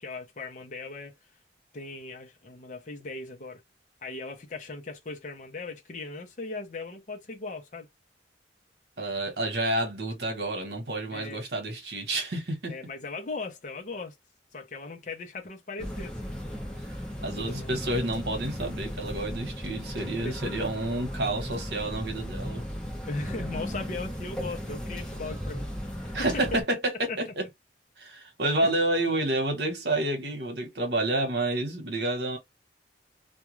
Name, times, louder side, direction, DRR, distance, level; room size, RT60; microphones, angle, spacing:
voice 1, 0.0-1.2 1.7-3.6 4.0-7.9 11.1-11.4 12.7-14.2 14.5-16.3 17.2-17.7 20.2-20.7 23.1-25.7 26.0-26.6 27.1-27.2 28.6-28.7, left 3 dB, 45° left, 0.6 m, -38 dB
voice 2, 9.0-12.7 17.2-22.7 26.1-27.4 28.0-32.4, right 2 dB, 65° right, 1.1 m, -29 dB
sound 1, 15.8-26.6, equal, 5° left, 0.8 m, -36 dB
2.3 x 2.2 x 2.9 m
head